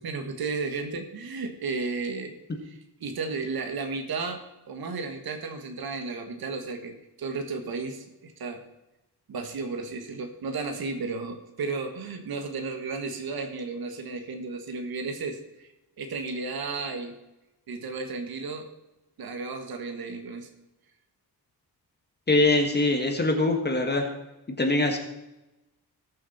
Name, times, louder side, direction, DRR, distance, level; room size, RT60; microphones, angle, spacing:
voice 1, 0.0-2.3 2.6-8.6 9.3-15.7 16.0-17.2 17.7-18.7 19.2-20.5, right 4 dB, 65° right, 5 dB, 1.6 m, -33 dB
voice 2, 22.3-24.1 24.6-25.0, left 2 dB, 25° left, 4 dB, 1.5 m, -23 dB
19.5 x 6.9 x 4.2 m, 0.97 s
wide cardioid pair, 155°, 40 cm